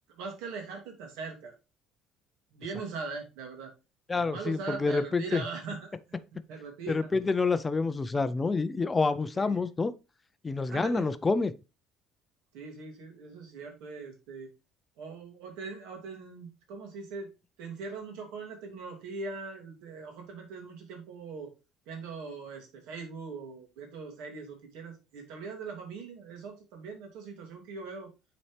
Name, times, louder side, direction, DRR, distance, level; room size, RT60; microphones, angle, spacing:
voice 1, 0.2-1.5 2.5-3.7 4.1-6.0 6.5-7.1 9.3-9.6 10.7-11.1 12.5-14.5 15.0-17.3 17.6-21.5 21.9-28.1, right 4 dB, 85° right, 2.4 m, -41 dB
voice 2, 4.1-5.4 6.9-9.9 10.4-11.5, left 4 dB, 15° left, 0.4 m, -28 dB
8.5 x 4.2 x 3.2 m
cardioid pair, 150°, 0 cm